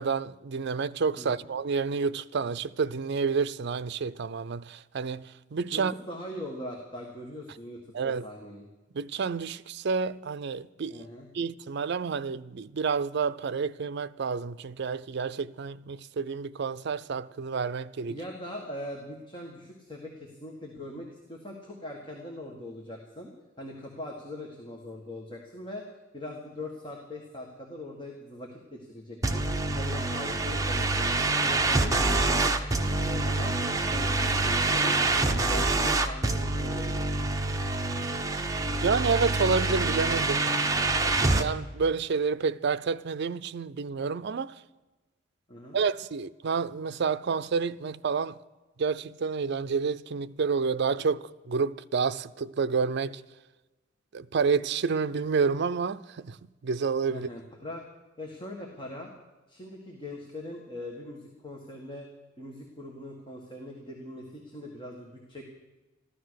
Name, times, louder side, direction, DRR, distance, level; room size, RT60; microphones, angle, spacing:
voice 1, 0.0-5.2 5.5-5.9 7.9-8.2 8.9-11.0 11.3-18.2 38.8-40.6 41.0-44.5 45.7-48.3 48.8-53.2 54.1-56.4 56.6-57.3, right 5 dB, 60° right, 0.5 m, -29 dB
voice 2, 1.2-1.5 5.7-8.7 10.9-11.3 18.1-23.3 23.6-29.4 29.7-31.1 31.4-33.6 33.9-37.3 45.5-45.8 57.1-57.8 58.2-59.1 59.5-62.1 62.4-65.4, left 1 dB, 25° left, 1.7 m, -41 dB
sound 1, 29.2-41.5, right 2 dB, 15° right, 0.9 m, -26 dB
14.5 x 12.5 x 6.4 m
head